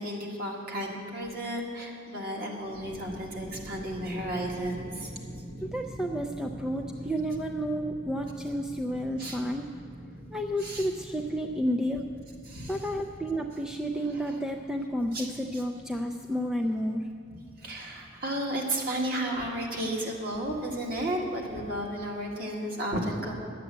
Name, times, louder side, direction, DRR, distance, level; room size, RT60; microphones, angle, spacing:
voice 1, 0.0-5.1 9.2-9.4 10.6-10.9 12.5-12.8 14.1-14.3 15.1-15.3 15.5-15.6 17.6-23.3, right 1 dB, 50° right, -1 dB, 1.9 m, -33 dB
sound 1, 2.5-21.3, right 1 dB, 85° right, 2.9 m, -46 dB
voice 2, 5.6-9.7 10.3-12.0 12.7-17.0, equal, 5° right, 3 dB, 0.4 m, -31 dB
11.0 x 8.0 x 8.1 m, 2.3 s
head